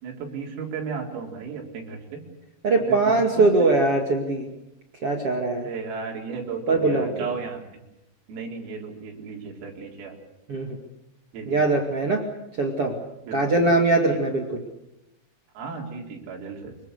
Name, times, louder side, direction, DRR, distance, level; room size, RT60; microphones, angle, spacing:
voice 1, 0.0-2.3 2.9-3.5 5.5-7.6 8.3-10.2 11.3-11.6 13.3-13.6 14.1-14.2 15.5-16.7, right 5 dB, 90° right, 0 dB, 6.7 m, -35 dB
voice 2, 2.6-4.5 5.0-5.7 6.7-7.3 10.5-10.8 11.5-12.2 12.6-13.0 13.3-14.6, right 2 dB, 40° right, 2 dB, 2.1 m, -21 dB
26.0 x 23.0 x 6.7 m, 0.90 s
omnidirectional pair, 5.8 m